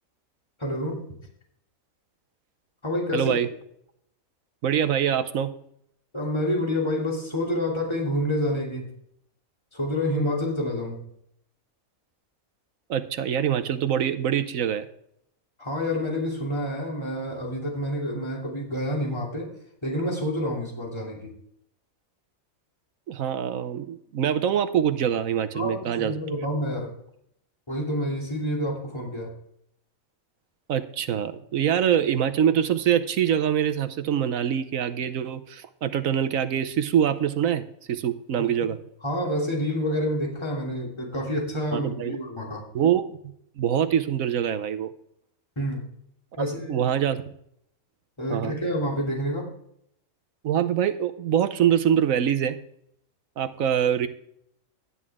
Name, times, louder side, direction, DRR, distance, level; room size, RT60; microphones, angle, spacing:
voice 1, 0.6-1.1 2.8-3.4 6.1-8.9 9.7-11.0 15.6-19.5 19.8-21.3 25.5-26.9 27.7-29.3 38.4-38.7 39.0-42.6 45.6-45.9 46.4-46.8 48.2-49.5, left 1 dB, 20° left, -2 dB, 2.9 m, -28 dB
voice 2, 3.1-3.5 4.6-5.5 12.9-14.9 23.1-26.2 30.7-38.8 41.7-42.2 42.7-43.2 43.6-44.9 46.7-47.2 48.3-48.6 50.4-52.6 53.4-54.1, right 9 dB, 75° right, 10 dB, 1.2 m, -24 dB
12.5 x 9.9 x 3.6 m, 0.71 s
omnidirectional pair, 1.4 m